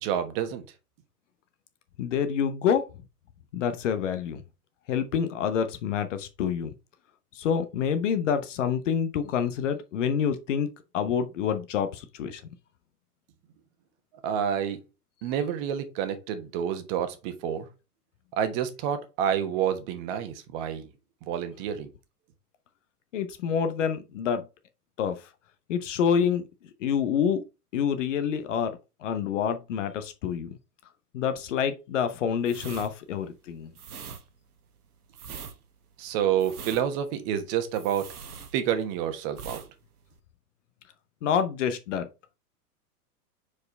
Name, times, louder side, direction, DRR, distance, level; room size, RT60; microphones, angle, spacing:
voice 1, 0.0-0.6 14.2-14.8 15.2-17.7 18.4-20.9 21.3-21.9 36.0-38.1 38.5-39.6, right 9 dB, 35° right, 1.2 m, -28 dB
voice 2, 2.0-2.8 3.5-4.4 4.9-6.7 7.3-10.7 10.9-12.4 23.1-24.4 25.0-25.3 25.7-26.5 26.8-27.4 27.7-30.6 31.1-33.7 41.2-42.1, left 7 dB, 50° left, 0.9 m, -27 dB
sound 1, 32.4-39.0 39.3-39.7 40.0-40.2, right 6 dB, 70° right, 1.1 m, -42 dB
4.8 x 4.7 x 4.3 m
figure-of-eight pair, 100°, 47 cm